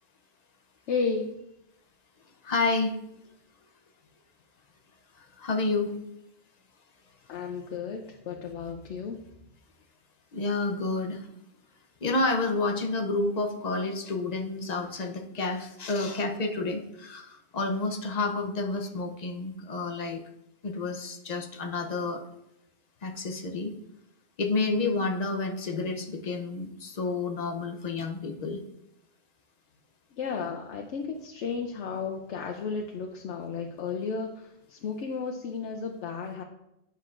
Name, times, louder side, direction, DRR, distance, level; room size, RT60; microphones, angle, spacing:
voice 1, 0.9-1.4 7.3-9.2 30.1-36.4, left 5 dB, 80° left, 2 dB, 0.9 m, -33 dB
voice 2, 2.4-2.9 5.4-6.0 10.3-11.3 12.0-20.2 20.6-22.2 23.0-23.7 24.4-28.6, left 3 dB, 45° left, 3 dB, 0.7 m, -29 dB
9.8 x 5.6 x 2.4 m, 0.86 s
omnidirectional pair, 1.2 m